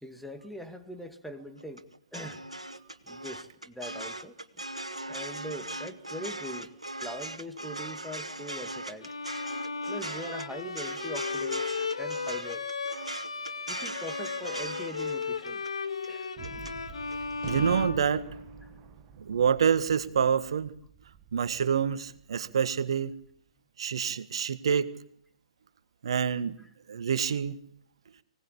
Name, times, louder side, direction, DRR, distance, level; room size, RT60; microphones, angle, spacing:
voice 1, 0.0-1.9 2.1-2.4 3.0-4.3 5.1-6.7 7.0-9.1 9.9-12.7 13.7-15.6 16.1-16.3 17.2-17.3 18.6-18.7, equal, ahead, 6 dB, 2.2 m, -42 dB
sound 1, 1.6-16.7 17.1-17.5, right 1 dB, 90° right, 1.8 m, -39 dB
Bowed string instrument, 9.0-18.7, left 5 dB, 70° left, 2.2 m, -35 dB
Gunshot gunfire, 16.4-22.9, right 9 dB, 25° right, 1.7 m, -47 dB
voice 2, 17.4-18.3 19.2-20.7 21.3-23.1 23.8-24.9 26.0-26.6 26.9-27.6, right 7 dB, 55° right, 13 dB, 1.7 m, -27 dB
24.5 x 18.5 x 8.7 m, 0.67 s
figure-of-eight pair, 125°, 3 cm